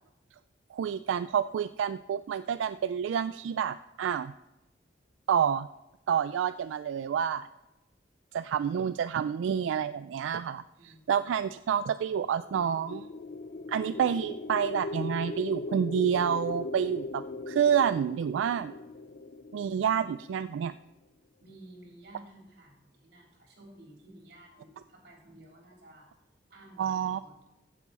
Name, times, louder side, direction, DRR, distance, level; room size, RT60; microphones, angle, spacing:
voice 1, 0.7-4.3 5.3-5.7 6.1-7.5 8.3-13.1 13.7-18.7 19.5-20.7 26.8-27.2, right 8 dB, 90° right, 13 dB, 0.3 m, -29 dB
voice 2, 10.8-11.2 21.4-26.1 26.5-27.4, right 1 dB, 60° right, -1 dB, 3.5 m, -53 dB
sound 1, 12.3-20.5, left 3 dB, 50° left, 0.4 m, -39 dB
15.0 x 7.1 x 4.2 m, 0.97 s
head